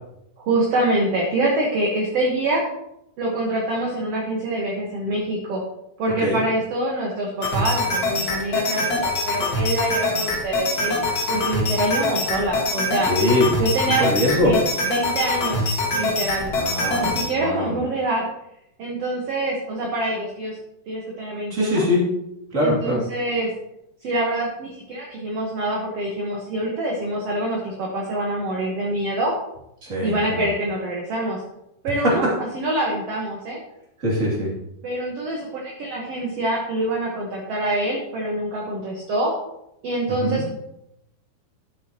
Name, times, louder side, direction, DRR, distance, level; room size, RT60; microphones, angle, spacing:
voice 1, 0.4-2.6 3.2-5.6 6.0-11.0 11.3-13.1 13.6-14.1 14.4-14.6 14.9-15.7 16.0-16.5 17.0-18.2 18.8-20.6 20.9-21.9 22.6-23.5 24.0-29.3 30.0-31.4 31.8-33.6 34.8-39.3 39.8-40.5, right 1 dB, 60° right, -2 dB, 1.8 m, -25 dB
sound 1, 7.4-17.3, left 2 dB, 45° left, 1.3 m, -24 dB
voice 2, 13.0-13.6 14.0-14.5 16.5-17.8 21.5-22.1 22.5-23.0 29.9-30.4 32.0-32.1 34.0-34.5 40.1-40.4, left 1 dB, 25° right, -4 dB, 2.5 m, -22 dB
12.0 x 7.9 x 2.9 m, 0.83 s
omnidirectional pair, 4.5 m